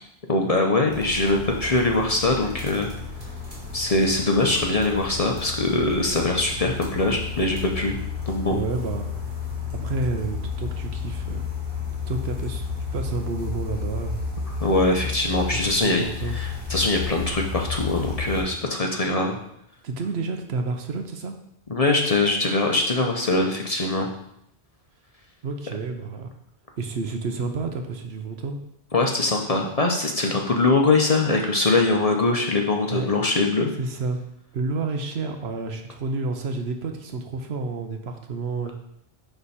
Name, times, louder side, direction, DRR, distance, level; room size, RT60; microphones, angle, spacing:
voice 1, 0.3-2.9 3.7-8.0 8.3-8.6 14.5-19.4 21.7-24.1 28.9-33.7, left 2 dB, 40° left, 2 dB, 0.7 m, -22 dB
sound 1, 0.9-18.4, left 5 dB, 25° right, 2.2 m, -32 dB
voice 2, 8.5-9.1 9.7-11.4 12.1-14.2 15.5-16.4 19.8-21.3 25.4-26.3 26.8-28.6 32.9-33.1 33.8-34.2 34.5-38.7, right 3 dB, 70° right, 5 dB, 1.0 m, -30 dB
9.7 x 3.4 x 4.2 m, 0.77 s
omnidirectional pair, 1.1 m